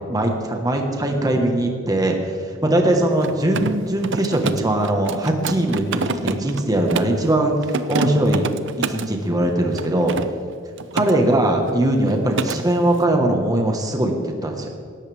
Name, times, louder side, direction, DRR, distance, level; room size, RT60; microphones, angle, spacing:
voice 1, 0.1-8.4 8.9-10.1 10.9-14.7, right 1 dB, 20° right, 2 dB, 1.4 m, -20 dB
Mechanisms, 3.1-7.2 7.6-9.1 9.7-11.1 11.4-11.8 12.0-12.6, right 4 dB, 60° right, 0.7 m, -27 dB
18.0 x 14.0 x 3.5 m, 2.3 s
head